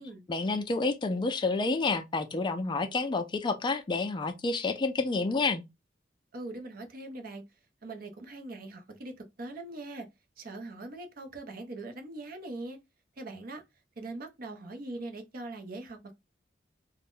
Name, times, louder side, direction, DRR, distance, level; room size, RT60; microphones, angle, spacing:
voice 1, 0.3-5.6, left 3 dB, 25° left, 0.3 m, -29 dB
voice 2, 6.3-7.4 7.8-10.1 10.4-12.8 13.2-13.6 14.0-16.1, right 2 dB, 55° right, 0.6 m, -41 dB
2.5 x 2.1 x 3.4 m
head